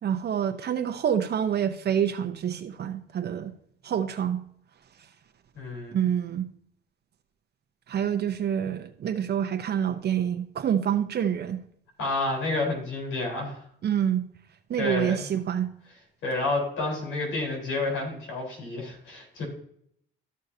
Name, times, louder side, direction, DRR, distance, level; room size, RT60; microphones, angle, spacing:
voice 1, 0.0-3.5 3.8-4.4 5.9-6.5 7.9-11.6 13.8-14.3 14.7-15.7, right 9 dB, 55° right, 6 dB, 0.8 m, -27 dB
voice 2, 5.5-6.0 12.0-13.6 14.8-15.2 16.2-19.4, left 2 dB, 85° left, 1 dB, 4.2 m, -29 dB
13.0 x 6.5 x 2.7 m, 0.67 s
cardioid pair, 90°, 20 cm